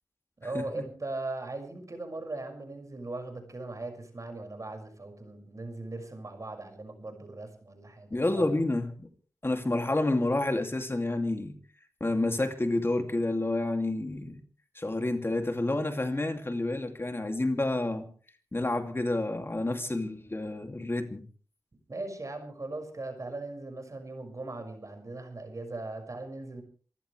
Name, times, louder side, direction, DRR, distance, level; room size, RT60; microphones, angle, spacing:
voice 1, 0.4-8.4 21.9-26.6, right 2 dB, 55° right, 6.1 m, -39 dB
voice 2, 8.1-9.1 9.4-11.6 12.0-14.4 14.7-18.1 18.5-21.2, left 2 dB, 35° left, 2.6 m, -29 dB
27.5 x 15.5 x 3.4 m
cardioid pair, 50°, 7 cm